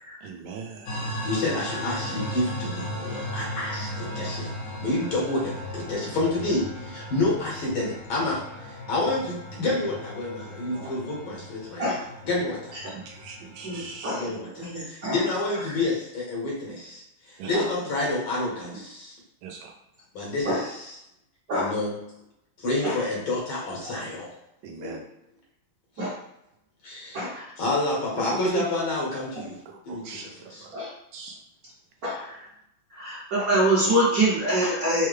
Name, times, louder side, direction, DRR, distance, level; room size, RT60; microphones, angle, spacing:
voice 1, 0.2-0.9 12.9-14.2 17.4-17.6 19.4-19.7 24.6-25.0 29.7-30.7 31.1-31.4, right 5 dB, 80° right, 2 dB, 1.4 m, -41 dB
sound 1, 0.9-14.1, left 1 dB, 60° left, 0.7 m, -37 dB
voice 2, 1.2-4.5 4.8-12.8 14.1-17.0 17.3-19.1 20.1-21.0 21.5-22.0 22.6-24.3 26.0-26.1 26.8-27.2 27.6-29.6 29.9-30.6, left 2 dB, 80° left, -4 dB, 2.2 m, -29 dB
voice 3, 13.6-14.2 14.6-15.2 17.5-17.6 20.5-20.6 21.5-21.7 22.8-22.9 24.8-25.0 26.0-26.1 27.1-27.4 28.5-28.6 30.7-30.9 32.0-32.4 33.0-35.1, right 1 dB, 55° right, -8 dB, 1.2 m, -25 dB
5.5 x 2.2 x 3.2 m, 0.81 s
omnidirectional pair, 2.2 m